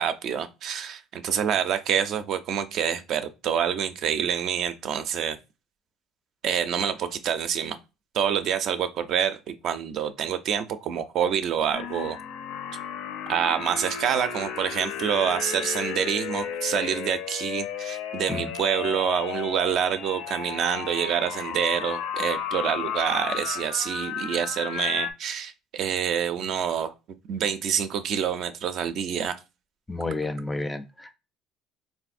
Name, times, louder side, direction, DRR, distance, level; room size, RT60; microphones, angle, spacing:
voice 1, 0.0-5.4 6.4-7.8 8.1-12.2 13.3-26.9 27.3-29.4, right 8 dB, 60° right, 0.4 m, -27 dB
sound 1, 11.7-25.1, left 8 dB, 75° left, 0.5 m, -33 dB
voice 2, 29.9-31.1, left 2 dB, 10° left, 0.4 m, -31 dB
3.4 x 2.5 x 2.5 m
cardioid pair, 115°, 0 cm